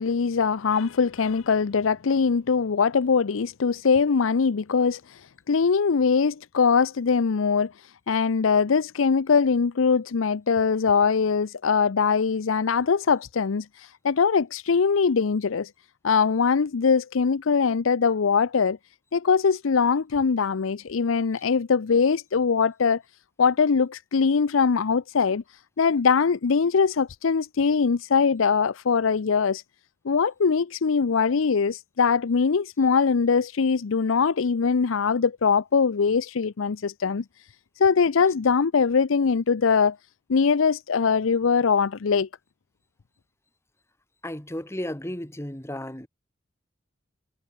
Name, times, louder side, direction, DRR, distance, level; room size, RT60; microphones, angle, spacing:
voice 1, 0.0-15.7 16.0-18.8 19.1-23.0 23.4-25.4 25.8-29.6 30.0-37.2 37.8-40.0 40.3-42.3, left 5 dB, 85° left, 0.6 m, -22 dB
voice 2, 44.2-46.1, left 1 dB, 15° left, 1.7 m, -34 dB
head